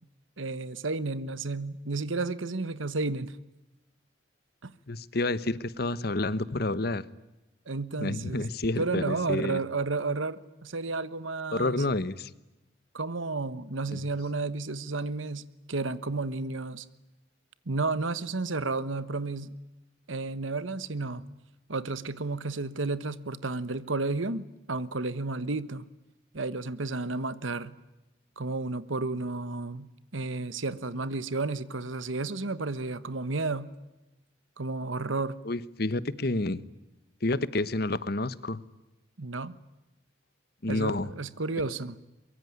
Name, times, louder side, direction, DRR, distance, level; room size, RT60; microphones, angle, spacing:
voice 1, 0.4-3.3 4.6-4.7 7.7-8.4 8.8-11.8 12.9-16.8 17.7-19.5 20.1-21.2 21.7-25.8 26.3-27.7 28.4-33.7 34.6-35.4 39.2-39.5 40.7-42.0, right 3 dB, 85° right, 15 dB, 1.3 m, -32 dB
voice 2, 4.9-7.0 8.0-9.6 11.5-12.3 13.9-14.0 35.4-36.6 37.2-38.6 40.6-41.1, left 2 dB, 50° left, 17 dB, 1.1 m, -29 dB
24.0 x 23.0 x 9.7 m, 1.0 s
head